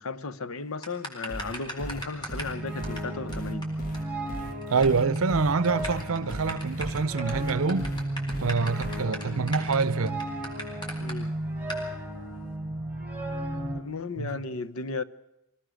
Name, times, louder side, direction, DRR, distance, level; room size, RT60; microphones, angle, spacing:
voice 1, 0.0-3.7 11.0-11.3 13.7-15.0, left 3 dB, 65° left, 0.9 m, -35 dB
sound 1, 0.8-2.6 2.8-3.0 3.3-3.4 3.6-3.7 3.9-4.0 4.3-4.9 5.2-5.3 5.6-11.1 11.7-11.8, equal, 20° left, 4.2 m, -37 dB
sound 2, 1.3-9.0, right 1 dB, 40° left, 2.0 m, -38 dB
sound 3, 2.1-13.8, right 1 dB, 5° right, 4.2 m, -33 dB
voice 2, 4.7-7.9 8.4-10.2 14.2-14.3, right 4 dB, 65° right, 0.6 m, -26 dB
24.0 x 18.0 x 6.3 m
head